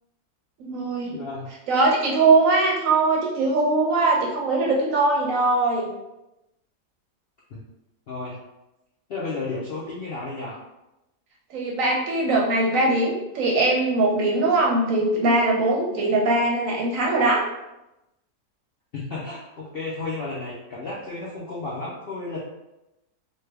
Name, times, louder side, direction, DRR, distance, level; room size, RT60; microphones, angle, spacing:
voice 1, 0.6-1.2 1.7-5.9 11.5-17.5, right 2 dB, 70° right, -2 dB, 0.9 m, -21 dB
voice 2, 1.1-1.5 7.5-7.7 8.1-8.4 9.1-10.6 18.9-22.4, left 3 dB, 80° left, -5 dB, 0.5 m, -33 dB
3.2 x 2.2 x 3.3 m, 0.93 s
omnidirectional pair, 1.7 m